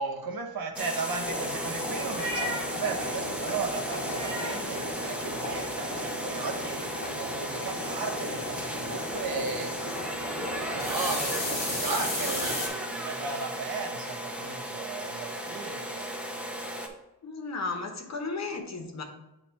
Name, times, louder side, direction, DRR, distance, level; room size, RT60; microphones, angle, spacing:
voice 1, 0.0-9.9 10.7-16.2, right 4 dB, 65° right, 4 dB, 1.0 m, -36 dB
sound 1, 0.7-16.9, equal, 5° right, 0.7 m, -36 dB
sound 2, 1.1-12.7, left 1 dB, 25° left, 2.5 m, -34 dB
voice 2, 17.2-19.0, left 3 dB, 45° left, 4 dB, 0.9 m, -34 dB
8.6 x 2.9 x 4.4 m, 0.93 s
wide cardioid pair, 140°, 39 cm